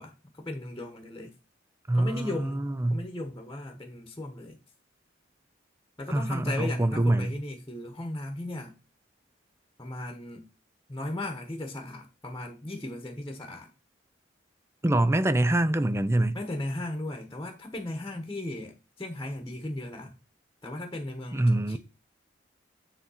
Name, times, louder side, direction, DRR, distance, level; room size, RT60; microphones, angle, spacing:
voice 1, 0.0-1.3 1.9-2.6 2.9-4.6 6.0-8.7 9.8-10.5 10.9-13.7 16.3-20.2 20.6-21.8, left 1 dB, 15° left, 1.2 m, -36 dB
voice 2, 1.9-3.0 6.1-7.3 14.8-16.4 21.3-21.8, right 1 dB, 15° right, 0.5 m, -25 dB
10.0 x 3.6 x 5.6 m
head